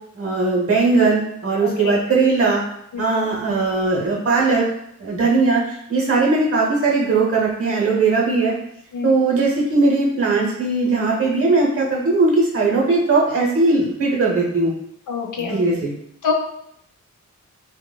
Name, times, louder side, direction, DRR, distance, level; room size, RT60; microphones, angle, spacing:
voice 1, 0.1-2.6 3.0-4.6 5.0-8.5 9.0-14.7 15.3-15.9, right 3 dB, 50° right, -3 dB, 0.8 m, -19 dB
voice 2, 1.6-2.0 2.9-3.1 8.9-9.2 15.1-15.8 16.2-16.3, left 6 dB, 90° left, 1 dB, 0.5 m, -26 dB
2.9 x 2.1 x 2.2 m, 0.76 s
wide cardioid pair, 150°, 30 cm